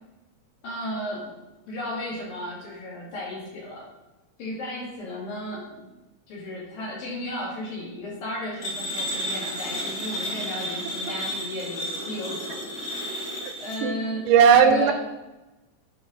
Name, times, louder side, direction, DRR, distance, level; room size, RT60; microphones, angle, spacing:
voice 1, 0.6-1.3 1.7-3.9 4.4-5.9 6.3-12.7 13.6-14.2 14.6-14.9, left 1 dB, 85° left, -5 dB, 4.3 m, -34 dB
sound 1, 8.6-13.8, equal, 30° left, 1.7 m, -32 dB
voice 2, 14.3-14.9, right 7 dB, 80° right, 8 dB, 2.1 m, -17 dB
9.1 x 4.5 x 5.2 m, 1.1 s
omnidirectional pair, 3.9 m